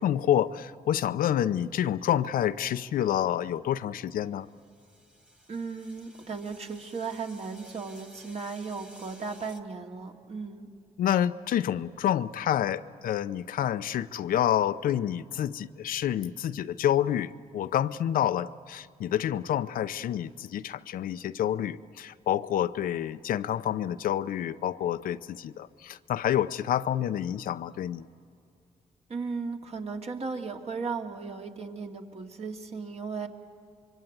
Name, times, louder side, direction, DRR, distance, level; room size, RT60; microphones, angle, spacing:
voice 1, 0.0-4.5 11.0-28.1, left 11 dB, 90° left, 12 dB, 0.7 m, -28 dB
sound 1, 4.5-9.6, equal, 5° right, 1.7 m, -54 dB
voice 2, 5.5-10.7 29.1-33.3, right 4 dB, 50° right, 3 dB, 2.4 m, -36 dB
25.5 x 23.5 x 9.4 m, 2.4 s
cardioid pair, 85°, 14 cm